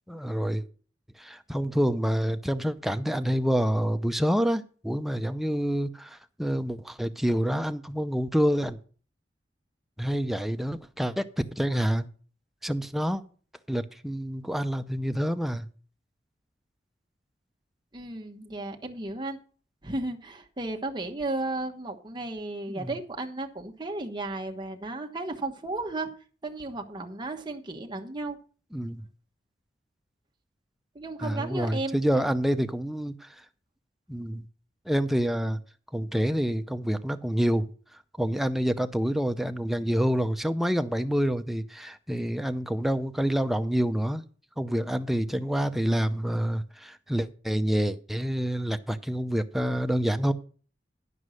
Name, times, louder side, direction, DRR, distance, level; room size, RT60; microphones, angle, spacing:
voice 1, 0.1-0.6 1.2-8.8 10.0-12.1 12.6-13.2 13.7-15.7 22.7-22.9 28.7-29.1 31.2-33.3 34.1-34.5 34.9-35.6 35.9-37.7 38.2-44.2 44.6-50.3, equal, ahead, 8 dB, 0.6 m, -27 dB
voice 2, 17.9-19.4 19.8-26.1 26.4-28.4 30.9-32.3, right 2 dB, 25° right, 2 dB, 1.2 m, -34 dB
11.5 x 5.4 x 6.3 m, 0.41 s
head